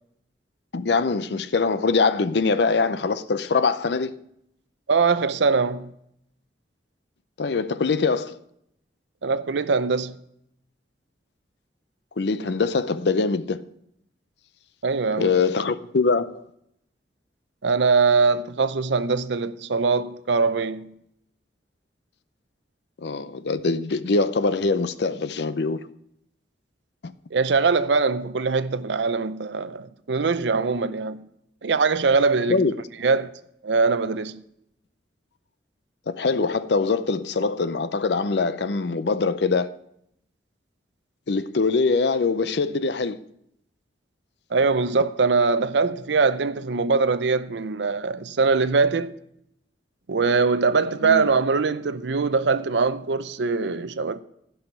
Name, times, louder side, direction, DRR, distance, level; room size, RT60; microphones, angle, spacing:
voice 1, 0.7-4.1 7.4-8.4 12.2-13.6 15.2-16.4 23.0-25.8 32.5-32.7 36.1-39.7 41.3-43.2 51.0-51.3, left 4 dB, 65° left, 0.6 m, -23 dB
voice 2, 4.9-5.9 9.2-10.2 14.8-15.4 17.6-20.9 27.3-31.3 31.6-32.6 33.0-33.3 33.6-34.4 44.5-49.1 50.1-54.2, right 4 dB, 75° right, 0.6 m, -22 dB
15.5 x 5.7 x 4.5 m
head